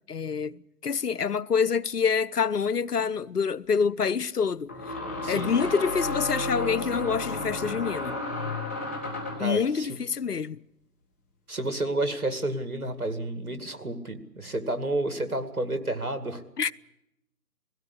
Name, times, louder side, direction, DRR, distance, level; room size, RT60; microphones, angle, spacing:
voice 1, 0.1-5.0 5.3-8.2 9.4-10.6 16.6-16.7, left 6 dB, 80° left, 0.7 m, -27 dB
sound 1, 2.7-2.8 4.7-9.5, left 2 dB, 10° left, 0.9 m, -32 dB
voice 2, 5.2-5.6 9.4-10.0 11.5-16.4, right 1 dB, 65° right, 2.3 m, -30 dB
18.0 x 16.5 x 9.9 m
figure-of-eight pair, 150°, 46 cm